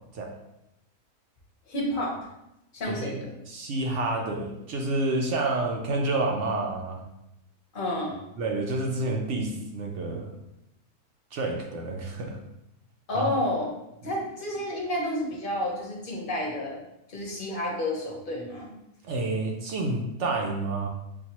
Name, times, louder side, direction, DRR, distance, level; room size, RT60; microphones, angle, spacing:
voice 1, 1.7-2.2 2.7-3.3 7.7-8.2 13.1-13.7 14.0-16.8 17.1-18.7, left 1 dB, 40° left, -2 dB, 1.0 m, -30 dB
voice 2, 2.9-7.1 8.4-10.3 11.3-12.4 13.1-13.3 14.0-14.1 19.0-20.9, right 2 dB, 65° right, 1 dB, 0.8 m, -29 dB
6.8 x 2.3 x 2.9 m, 0.86 s
omnidirectional pair, 1.7 m